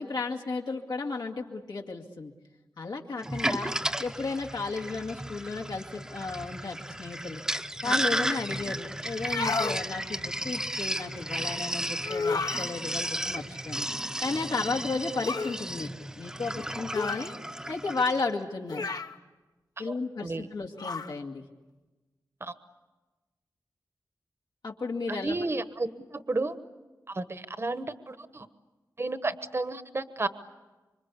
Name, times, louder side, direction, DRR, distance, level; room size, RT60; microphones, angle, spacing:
voice 1, 0.0-2.3 2.8-3.7 4.0-7.4 7.8-13.9 14.2-15.9 16.2-17.3 17.7-18.9 19.8-21.4 24.6-25.4, left 3 dB, 80° left, -1 dB, 2.2 m, -33 dB
Sink (filling or washing), 3.2-18.2, right 1 dB, 10° right, 0.9 m, -34 dB
sound 1, 9.2-9.8 12.0-12.7 15.2-15.6 16.9-17.3 18.7-19.2 20.8-21.1, left 4 dB, 65° left, 1.2 m, -31 dB
voice 2, 25.1-26.6 27.1-28.5 29.0-30.3, right 2 dB, 35° right, 11 dB, 1.2 m, -32 dB
26.5 x 24.5 x 8.4 m, 1.2 s
wide cardioid pair, 95°, 7 cm